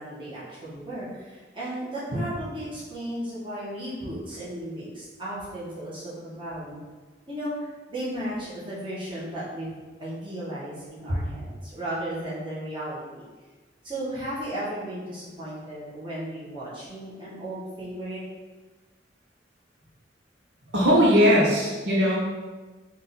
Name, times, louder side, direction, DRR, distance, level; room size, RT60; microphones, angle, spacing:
voice 1, 0.0-6.8 7.3-13.3 13.8-18.2, right 1 dB, 30° right, -9 dB, 1.4 m, -35 dB
voice 2, 20.7-22.2, equal, 90° right, -5 dB, 1.0 m, -19 dB
3.8 x 2.7 x 4.2 m, 1.3 s
head